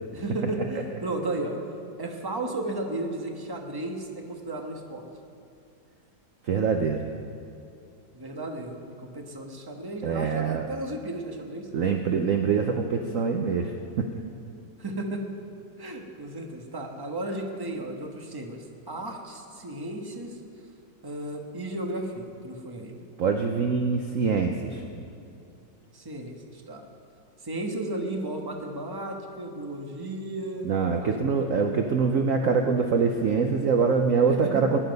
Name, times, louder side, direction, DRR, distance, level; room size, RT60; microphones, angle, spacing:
voice 1, 0.1-1.6 2.0-5.1 8.1-12.2 14.8-15.2 15.8-20.4 21.0-23.1 25.9-26.8 27.4-30.7 31.0-31.7 34.5-34.6, right 1 dB, 15° right, 1 dB, 1.2 m, -34 dB
voice 2, 6.4-7.0 10.0-10.7 11.7-14.1 23.2-24.8 30.6-34.8, right 5 dB, 55° right, 4 dB, 1.0 m, -24 dB
21.0 x 10.0 x 5.4 m, 2.6 s
omnidirectional pair, 2.0 m